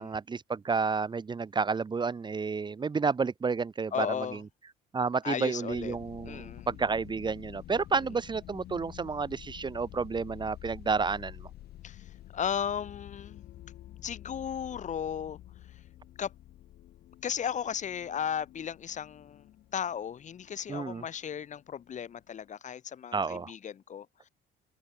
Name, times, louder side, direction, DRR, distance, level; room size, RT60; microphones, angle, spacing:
voice 1, 0.0-4.4 4.9-11.5 20.7-21.0 23.1-23.5, right 5 dB, 25° right, 1.8 m, -31 dB
voice 2, 3.9-4.4 5.2-6.0 6.2-6.7 7.9-8.0 11.8-13.4 14.0-15.4 16.2-16.3 17.2-19.4 19.7-24.3, left 8 dB, 45° left, 4.1 m, -35 dB
sound 1, 5.7-22.5, left 13 dB, 70° left, 5.4 m, -50 dB
open air
cardioid pair, 110°, 17 cm